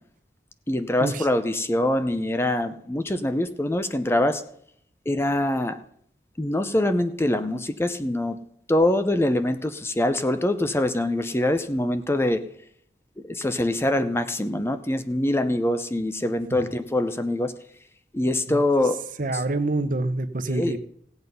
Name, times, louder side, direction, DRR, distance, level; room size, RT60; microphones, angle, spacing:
voice 1, 0.7-4.4 5.1-5.8 6.4-8.4 8.7-12.4 13.3-17.5 18.1-19.0 20.5-20.8, left 1 dB, 15° left, 10 dB, 0.6 m, -24 dB
voice 2, 19.2-20.8, right 2 dB, 50° right, 10 dB, 0.9 m, -26 dB
16.5 x 8.0 x 5.5 m, 0.67 s
head